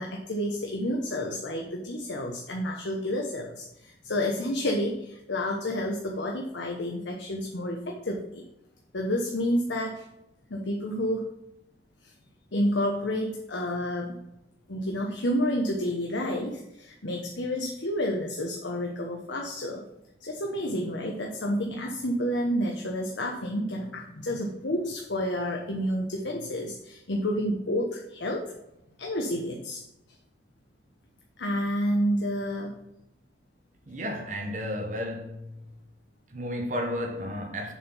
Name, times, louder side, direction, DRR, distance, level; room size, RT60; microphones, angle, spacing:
voice 1, 0.0-8.4 8.9-10.0 10.5-11.2 12.0-12.1 12.5-14.1 14.7-19.8 20.2-28.5 29.0-29.8 31.4-32.8, equal, 80° left, 1.0 m, -30 dB
voice 2, 33.9-35.5 36.3-37.7, equal, 40° right, 0.9 m, -32 dB
7.2 x 4.5 x 5.5 m
head